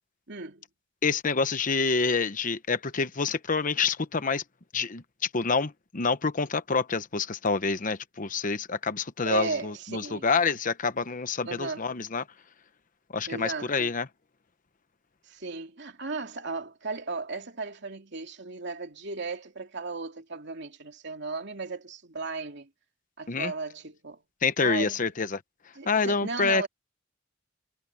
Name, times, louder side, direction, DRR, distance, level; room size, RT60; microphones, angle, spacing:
voice 1, 0.3-0.6 9.2-10.3 11.4-11.9 13.3-13.9 15.2-22.7 23.2-24.2 24.6-25.0 25.7-26.7, right 4 dB, 60° right, 2.8 m, -36 dB
voice 2, 1.0-4.4 4.7-12.3 13.1-14.1 23.3-23.5 24.4-25.4 25.9-26.7, left 4 dB, 45° left, 1.0 m, -27 dB
head